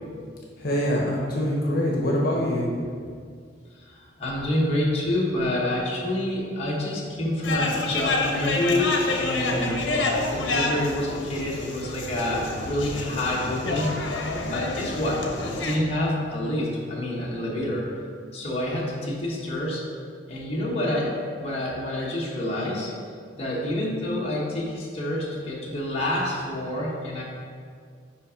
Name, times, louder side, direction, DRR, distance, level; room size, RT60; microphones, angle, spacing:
voice 1, 0.6-2.6, equal, 55° left, -3 dB, 1.1 m, -24 dB
voice 2, 3.7-10.0 10.3-14.3 14.5-17.9 18.3-19.8 20.3-22.9 23.3-27.2, left 1 dB, 35° left, -5 dB, 1.2 m, -28 dB
sound 1, 7.4-15.8, left 2 dB, 80° left, 0.8 m, -28 dB
5.6 x 5.1 x 4.9 m, 2.1 s
head